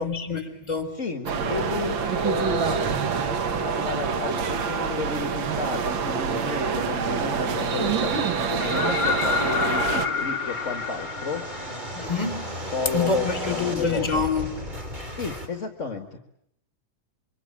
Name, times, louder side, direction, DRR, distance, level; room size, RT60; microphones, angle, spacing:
voice 1, 0.0-1.0 11.9-12.5 12.9-14.5, left 4 dB, 15° left, 8 dB, 3.3 m, -26 dB
voice 2, 0.9-3.0 3.6-11.4 12.7-14.2 15.1-16.2, left 4 dB, 35° left, 7 dB, 1.3 m, -32 dB
sound 1, 1.3-10.1, right 6 dB, 55° right, 1.4 m, -26 dB
sound 2, 6.9-15.5, equal, 15° right, 3.3 m, -37 dB
sound 3, 8.6-12.4 14.3-14.4, left 6 dB, 60° left, 0.9 m, -28 dB
26.5 x 24.0 x 8.7 m, 0.74 s
omnidirectional pair, 3.6 m